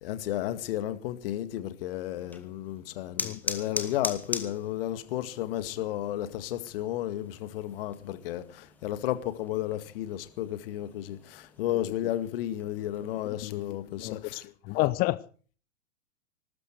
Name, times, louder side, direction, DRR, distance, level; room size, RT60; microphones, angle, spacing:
voice 1, 0.0-14.4, left 13 dB, 45° left, 2.0 m, -33 dB
sound 1, 2.1-13.3, left 2 dB, 5° left, 1.8 m, -42 dB
voice 2, 13.4-15.2, left 19 dB, 25° left, 0.7 m, -31 dB
21.5 x 13.0 x 4.6 m
figure-of-eight pair, 110°, 40 cm